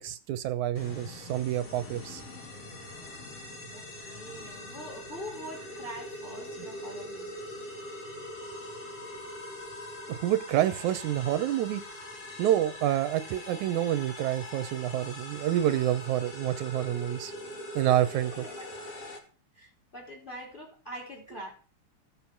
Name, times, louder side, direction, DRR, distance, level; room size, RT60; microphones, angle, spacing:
voice 1, 0.0-2.2 6.6-6.7 10.1-11.8 12.4-17.3 17.8-18.4, right 12 dB, 80° right, 2.2 m, -28 dB
sound 1, 0.8-19.2, left 1 dB, 55° left, 3.5 m, -42 dB
voice 2, 3.7-7.4 18.4-18.6 19.6-21.5, equal, 15° left, 4.1 m, -44 dB
15.5 x 7.1 x 5.9 m
omnidirectional pair, 3.5 m